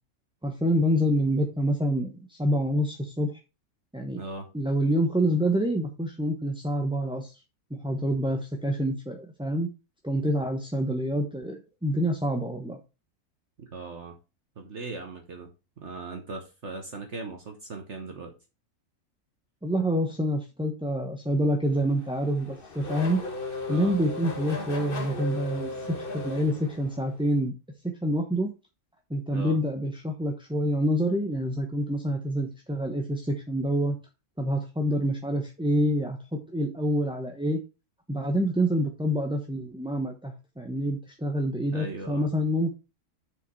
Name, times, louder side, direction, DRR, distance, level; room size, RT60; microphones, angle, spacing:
voice 1, 0.4-3.3 3.9-4.2 4.5-7.3 7.7-9.7 10.0-12.8 19.6-23.2 23.7-25.7 26.1-27.5 28.0-28.5 29.1-34.0 34.4-37.6 38.1-42.7, equal, 5° right, 1 dB, 0.7 m, -27 dB
voice 2, 4.2-4.5 13.6-14.1 14.6-15.5 15.8-18.3 23.7-23.9 29.3-29.6 41.7-42.3, right 3 dB, 50° right, 4 dB, 1.4 m, -38 dB
Race car auto racing / Accelerating revving vroom, 21.7-27.2, left 3 dB, 40° left, 1.4 m, -36 dB
6.7 x 5.2 x 4.5 m, 0.28 s
omnidirectional pair, 1.6 m